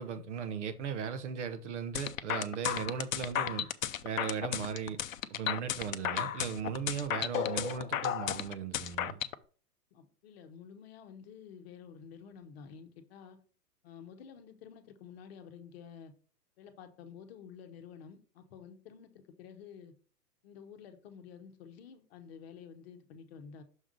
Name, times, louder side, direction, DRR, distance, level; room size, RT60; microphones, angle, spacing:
voice 1, 0.0-3.7 4.0-5.0 5.3-9.2, right 7 dB, 45° right, 0.9 m, -37 dB
sound 1, 1.9-9.3, left 10 dB, 55° left, 0.6 m, -33 dB
voice 2, 9.9-13.4 13.8-16.1 16.6-19.9 20.4-23.6, left 7 dB, 40° left, 1.0 m, -51 dB
6.4 x 3.7 x 5.1 m
figure-of-eight pair, 115°, 48 cm